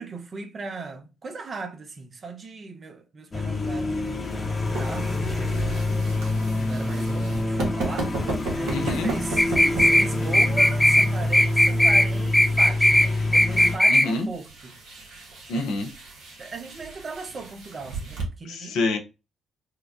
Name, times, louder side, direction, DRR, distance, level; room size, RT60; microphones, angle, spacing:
voice 1, 0.0-5.6 6.3-14.8 16.4-18.8, right 3 dB, 45° right, 0.7 m, -38 dB
sound 1, 3.3-13.8, left 2 dB, 35° left, 1.0 m, -27 dB
sound 2, 4.3-18.2, right 2 dB, 70° right, 1.0 m, -36 dB
voice 2, 8.7-9.1 13.9-14.3 15.5-15.9 18.5-19.0, left 2 dB, 70° left, 0.6 m, -26 dB
sound 3, 9.4-10.1 10.3-11.1 11.3-12.1 12.3-13.1 13.3-14.1, left 1 dB, 5° left, 0.4 m, -18 dB
4.6 x 2.3 x 2.4 m
hypercardioid pair, 45°, 0 cm